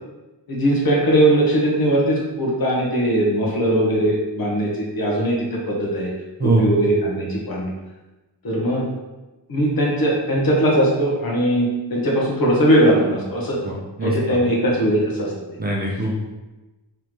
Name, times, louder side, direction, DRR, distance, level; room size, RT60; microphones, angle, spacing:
voice 1, 0.5-6.1 6.4-7.7 8.4-8.8 9.5-13.6 14.0-15.3, right 1 dB, 55° left, -4 dB, 1.1 m, -20 dB
voice 2, 13.6-14.4 15.6-16.2, right 2 dB, 20° right, -3 dB, 0.6 m, -22 dB
3.8 x 3.3 x 3.0 m, 1.1 s
wide cardioid pair, 145°, 43 cm